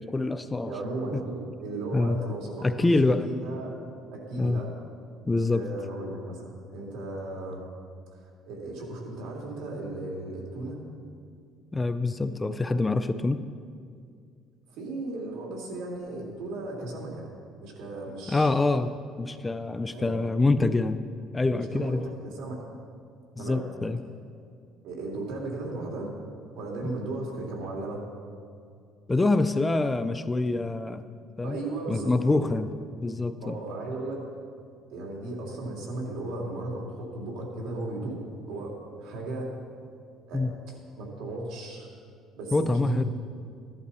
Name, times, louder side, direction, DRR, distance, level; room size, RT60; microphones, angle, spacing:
voice 1, 0.0-0.7 1.1-1.2 1.9-2.2 2.6-3.3 4.4-4.6 5.3-5.7 11.7-13.4 18.3-21.0 21.3-22.1 23.4-24.0 26.8-26.9 29.1-31.1 31.4-31.6 31.9-32.7 33.0-33.6 40.3-40.5 42.5-43.0, left 2 dB, 15° left, 11 dB, 0.4 m, -25 dB
voice 2, 0.7-3.7 4.1-4.7 5.5-7.6 8.2-10.8 14.7-17.3 17.6-18.5 19.9-20.2 21.7-22.6 23.4-23.7 24.8-26.1 26.6-28.0 31.4-32.1 32.4-32.5 33.4-34.2 34.9-39.5 40.3-40.4 41.0-41.9 42.4-43.0, right 2 dB, 75° right, -2 dB, 3.0 m, -35 dB
14.5 x 11.0 x 4.2 m, 2.2 s
cardioid pair, 140°, 0 cm